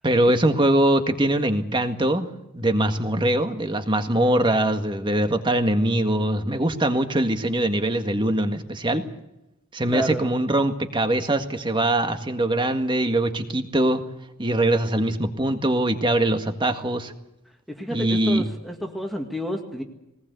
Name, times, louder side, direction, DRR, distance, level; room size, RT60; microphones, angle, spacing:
voice 1, 0.0-2.3 2.5-9.0 9.7-14.0 14.4-17.1 17.9-18.4, right 1 dB, 20° right, 7 dB, 1.8 m, -22 dB
voice 2, 9.9-10.3 17.8-19.8, equal, ahead, 3 dB, 2.0 m, -30 dB
21.5 x 19.5 x 8.3 m, 0.90 s
head